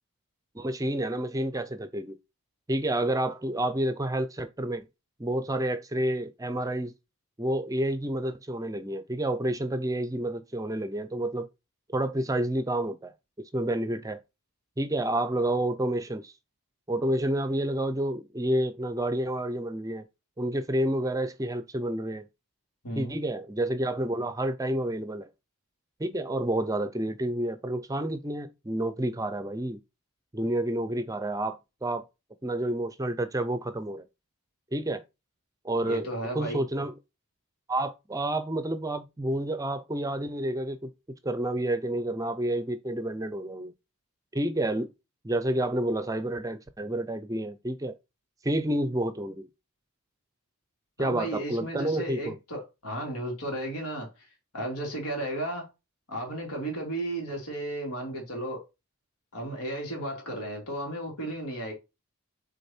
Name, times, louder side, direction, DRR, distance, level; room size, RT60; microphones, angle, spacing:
voice 1, 0.5-2.2 2.7-4.9 5.2-6.9 7.4-11.5 11.9-13.1 13.5-14.2 14.8-16.3 16.9-20.0 20.4-22.2 23.0-25.3 26.0-29.8 30.3-32.0 32.4-34.0 34.7-35.0 35.6-36.1 36.3-36.9 37.7-40.9 41.2-43.7 44.3-44.9 45.2-47.9 48.4-49.5 51.0-52.4, right 1 dB, 15° right, 0.5 m, -29 dB
voice 2, 35.8-36.6 51.0-54.1 54.5-55.7 56.1-58.6 59.3-61.7, right 1 dB, 85° left, 3.2 m, -34 dB
6.7 x 4.0 x 4.4 m
head